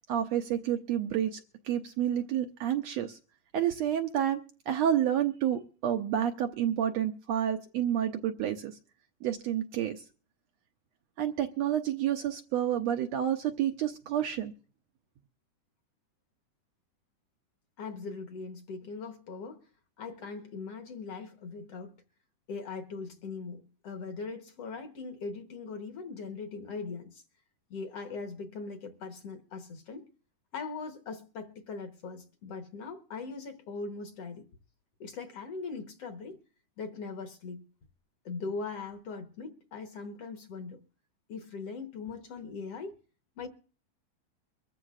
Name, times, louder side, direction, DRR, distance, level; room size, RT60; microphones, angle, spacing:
voice 1, 0.1-3.2 3.5-4.4 4.7-8.8 9.2-10.0 11.2-14.5, right 10 dB, 75° right, 1.7 m, -29 dB
voice 2, 17.8-19.7 20.0-22.0 22.5-27.2 27.7-30.1 30.5-34.5 35.0-36.4 36.8-37.6 38.3-40.8 41.3-43.0 43.4-43.5, left 4 dB, 60° left, 1.9 m, -40 dB
24.0 x 14.0 x 2.4 m
omnidirectional pair, 3.6 m